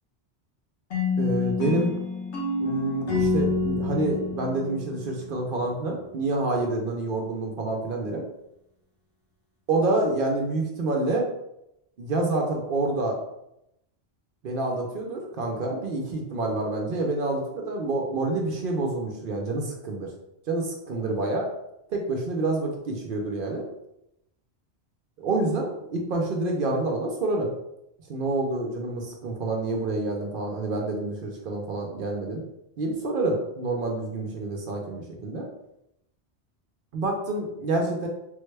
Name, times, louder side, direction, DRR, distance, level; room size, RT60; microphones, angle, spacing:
sound 1, 0.9-5.8, left 3 dB, 85° left, 1.2 m, -28 dB
voice 1, 1.2-2.0 2.6-8.2 9.7-11.3 12.0-13.2 14.4-20.1 20.5-21.4 21.9-23.7 25.2-27.5 28.1-32.4 32.8-35.5 36.9-38.1, right 2 dB, 60° right, 1 dB, 0.7 m, -27 dB
3.5 x 2.2 x 3.2 m, 0.83 s
omnidirectional pair, 1.1 m